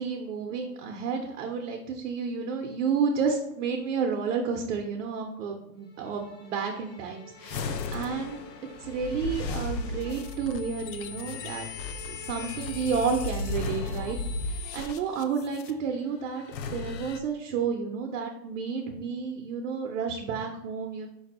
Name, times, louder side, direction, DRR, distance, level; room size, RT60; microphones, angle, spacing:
voice 1, 0.0-8.4 8.8-11.7 12.1-14.2 14.4-16.4 16.7-21.1, right 5 dB, 50° right, 3 dB, 0.5 m, -31 dB
sound 1, 5.8-14.6, right 3 dB, 35° left, 1.3 m, -52 dB
sound 2, 7.4-15.7 16.4-17.2, left 3 dB, 90° left, 0.7 m, -35 dB
4.7 x 2.6 x 4.1 m, 0.81 s
supercardioid pair, 170°, 49 cm